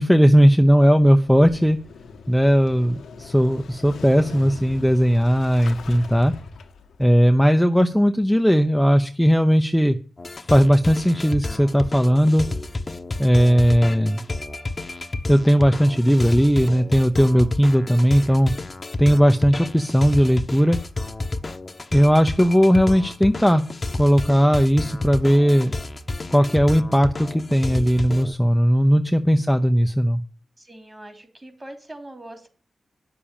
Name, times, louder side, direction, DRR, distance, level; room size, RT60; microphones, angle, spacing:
voice 1, 0.0-1.8 2.3-6.3 7.0-10.0 10.5-12.4 13.2-14.2 15.3-18.5 19.0-20.8 21.9-23.6 23.9-25.7 26.3-30.2, equal, ahead, 6 dB, 0.8 m, -17 dB
Motorcycle / Engine starting, 1.2-7.1, left 4 dB, 90° left, 1.3 m, -40 dB
sound 1, 10.2-28.3, left 2 dB, 35° left, 1.0 m, -30 dB
voice 2, 30.6-32.5, right 1 dB, 25° right, 6 dB, 3.1 m, -41 dB
10.0 x 6.9 x 8.9 m, 0.40 s
cardioid pair, 70°, 0 cm